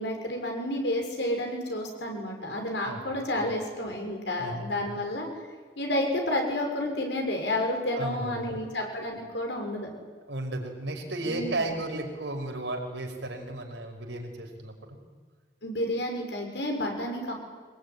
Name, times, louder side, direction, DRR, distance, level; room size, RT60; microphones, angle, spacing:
voice 1, 0.0-5.3 5.8-9.9 11.2-11.6 15.6-17.3, left 1 dB, 75° left, 3 dB, 6.6 m, -30 dB
voice 2, 4.4-4.7 7.9-8.6 10.3-15.0, right 1 dB, 90° right, 2 dB, 5.5 m, -34 dB
24.5 x 20.5 x 9.9 m, 1.5 s
head